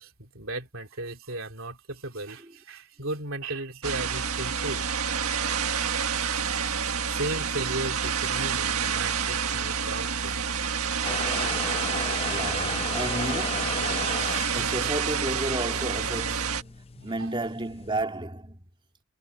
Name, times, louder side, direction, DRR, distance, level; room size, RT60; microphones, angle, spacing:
voice 1, 0.0-4.9 5.1-5.2 6.5-6.8 7.1-10.4 14.5-14.7 17.0-17.1, right 2 dB, 65° right, 3.2 m, -36 dB
sound 1, 3.8-16.6, right 6 dB, 90° right, 1.6 m, -28 dB
sound 2, 11.0-18.0, left 4 dB, 25° left, 0.6 m, -36 dB
voice 2, 12.2-16.7 17.0-18.7, right 1 dB, 25° right, 3.3 m, -33 dB
head